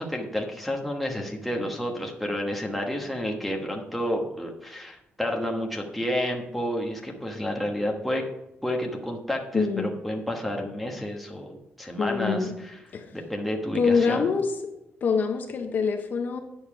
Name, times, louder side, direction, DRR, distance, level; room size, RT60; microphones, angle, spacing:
voice 1, 0.0-8.2 8.6-12.8 13.1-14.3, equal, ahead, 0 dB, 1.2 m, -30 dB
voice 2, 9.5-9.9 12.0-12.6 12.9-13.1 13.7-14.5 15.0-16.4, left 5 dB, 45° left, 5 dB, 0.8 m, -25 dB
9.5 x 7.2 x 4.8 m, 0.93 s
wide cardioid pair, 175°, 4 cm